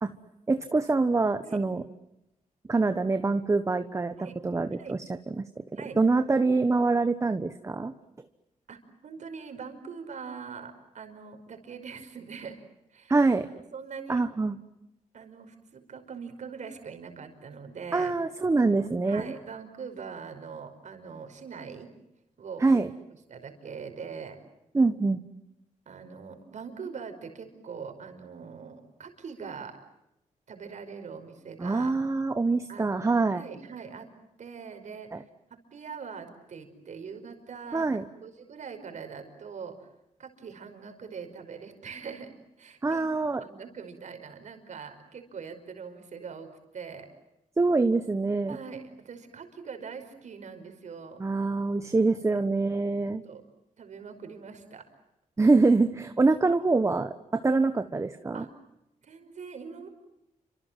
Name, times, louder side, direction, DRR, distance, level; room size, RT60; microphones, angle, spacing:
voice 1, 0.5-1.8 2.7-4.1 4.4-5.0 5.3-5.4 6.0-7.9 13.1-13.5 14.1-14.6 17.9-19.3 22.6-22.9 24.7-25.2 31.6-33.4 35.1-35.2 37.7-38.0 42.8-43.4 47.6-48.6 51.2-53.2 55.4-58.4, right 3 dB, 20° right, 9 dB, 1.2 m, -25 dB
voice 2, 8.7-12.6 12.9-13.1 13.7-14.2 15.1-18.1 18.6-21.9 22.4-22.6 23.3-24.4 25.9-29.8 30.5-31.9 32.7-33.1 33.3-34.1 34.4-35.2 35.5-39.9 40.2-42.3 42.6-43.1 43.4-47.1 48.5-51.2 52.0-52.4 53.2-53.4 53.8-54.9 58.3-58.5 59.0-59.9, right 6 dB, 60° right, 6 dB, 5.3 m, -42 dB
29.5 x 26.5 x 7.6 m, 0.89 s
wide cardioid pair, 120°, 14 cm